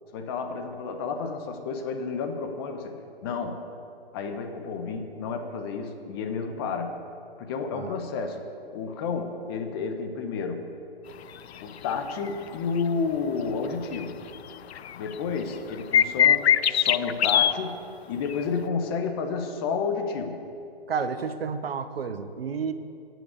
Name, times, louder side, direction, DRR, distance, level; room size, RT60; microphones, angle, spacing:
voice 1, 0.1-3.6 4.1-7.0 7.4-10.7 11.6-14.2 14.9-20.4, left 5 dB, 25° left, 5 dB, 0.9 m, -31 dB
sound 1, 12.1-12.3 12.8-12.9 13.9-14.0 14.4-14.5 14.7-15.1 15.9-17.5 18.3-18.4, left 9 dB, 85° left, 0.5 m, -21 dB
voice 2, 20.9-22.7, right 6 dB, 70° right, 10 dB, 1.0 m, -31 dB
14.0 x 6.1 x 8.2 m, 2.5 s
hypercardioid pair, 150°, 31 cm